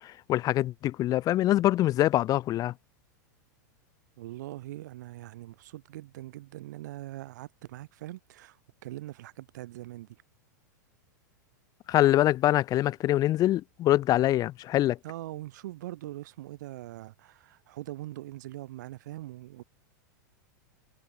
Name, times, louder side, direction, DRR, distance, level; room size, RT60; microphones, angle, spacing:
voice 1, 0.3-2.7 11.9-15.0, left 14 dB, 40° left, 2.9 m, -24 dB
voice 2, 4.2-8.6 8.8-10.1 15.0-19.6, right 15 dB, 70° right, 6.8 m, -42 dB
hypercardioid pair, 110°, 10 cm